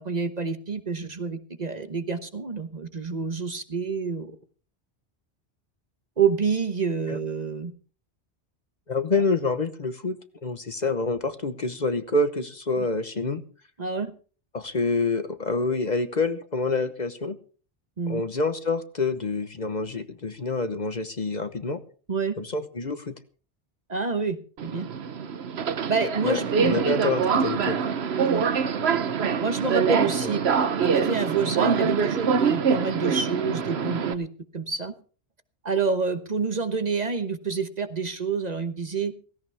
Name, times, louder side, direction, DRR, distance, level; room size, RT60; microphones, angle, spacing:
voice 1, 0.0-4.3 6.2-7.7 12.8-12.9 13.8-14.1 18.0-18.2 22.1-22.3 23.9-24.4 24.6-24.9 25.9-26.8 28.2-28.5 29.4-34.3 34.5-34.9 35.6-39.1, right 5 dB, 40° right, 9 dB, 1.2 m, -28 dB
voice 2, 8.9-13.4 14.5-17.4 18.1-21.8 22.4-23.1 26.2-27.8 30.2-30.4, left 3 dB, 40° left, 10 dB, 1.1 m, -27 dB
Subway metro underground, 24.6-34.1, right 6 dB, 70° right, 1.2 m, -25 dB
17.0 x 17.0 x 3.5 m, 0.41 s
omnidirectional pair, 1.1 m